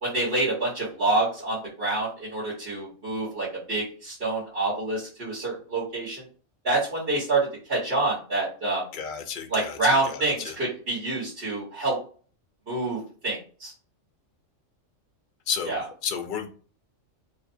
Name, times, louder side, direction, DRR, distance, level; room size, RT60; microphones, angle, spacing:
voice 1, 0.0-6.2 6.6-8.8 9.5-12.0 12.7-13.7 15.7-15.8, right 2 dB, 50° right, -7 dB, 1.8 m, -27 dB
voice 2, 8.9-9.8 10.0-10.6 15.5-15.7 16.0-16.5, left 6 dB, 50° left, 6 dB, 0.7 m, -32 dB
3.2 x 2.4 x 4.2 m, 0.40 s
omnidirectional pair, 1.3 m